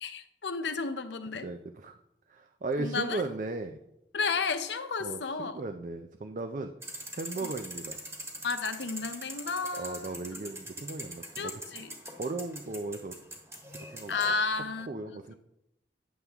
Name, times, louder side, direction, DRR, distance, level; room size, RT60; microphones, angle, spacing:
voice 1, 0.0-1.5 2.8-3.2 4.1-5.5 7.4-7.5 8.4-10.2 11.4-11.9 14.1-14.9, left 4 dB, 85° left, 0.8 m, -32 dB
voice 2, 1.4-2.0 2.3-3.8 5.0-6.7 7.1-8.0 9.7-11.6 12.2-13.2 13.8-14.1 14.5-15.3, right 2 dB, 45° right, 0.4 m, -36 dB
sound 1, 6.8-14.4, right 1 dB, 15° right, 1.4 m, -43 dB
9.5 x 7.3 x 3.5 m
head